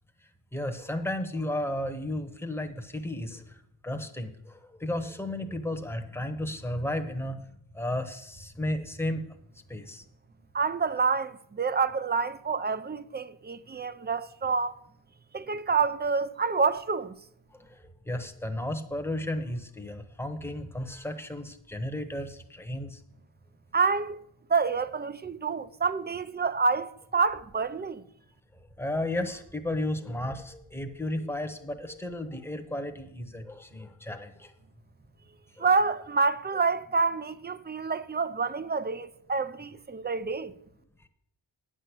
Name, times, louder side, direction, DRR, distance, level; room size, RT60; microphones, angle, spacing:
voice 1, 0.5-7.5 7.7-9.2 9.7-10.0 17.5-23.0 28.8-34.5 35.6-35.7, left 1 dB, 5° left, 1.0 m, -34 dB
voice 2, 10.5-14.7 15.3-17.2 23.7-24.2 24.5-28.1 35.6-40.5, right 4 dB, 20° right, 0.4 m, -28 dB
9.2 x 6.2 x 8.2 m
wide cardioid pair, 110°, 48 cm